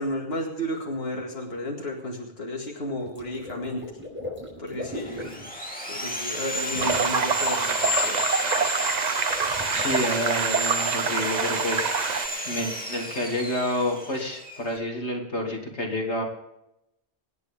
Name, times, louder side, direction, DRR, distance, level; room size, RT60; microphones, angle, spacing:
voice 1, 0.0-4.0 4.6-5.5 5.9-8.3, left 1 dB, 65° left, 0 dB, 2.4 m, -33 dB
Water / Liquid, 3.0-5.5 6.5-7.6 9.1-10.0, left 1 dB, 10° right, 5.6 m, -38 dB
Sawing, 4.9-14.7, left 1 dB, 10° left, 2.7 m, -31 dB
sound 1, 6.8-12.3, right 6 dB, 45° right, 0.8 m, -26 dB
voice 2, 9.7-12.2 12.4-16.2, left 1 dB, 85° left, 0 dB, 3.0 m, -29 dB
26.0 x 9.8 x 3.5 m, 0.85 s
omnidirectional pair, 1.1 m